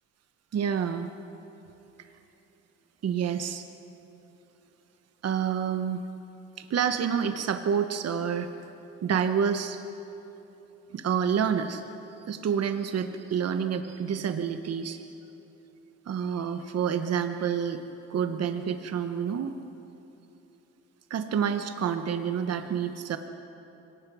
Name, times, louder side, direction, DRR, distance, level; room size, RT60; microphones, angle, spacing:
voice 1, 0.5-1.1 3.0-3.6 5.2-6.0 6.6-8.5 9.0-9.8 10.9-11.8 12.3-15.0 16.1-17.8 18.1-19.5 21.1-23.2, right 7 dB, 55° right, 8 dB, 1.2 m, -28 dB
24.5 x 18.5 x 6.3 m, 3.0 s
cardioid pair, 90°, 30 cm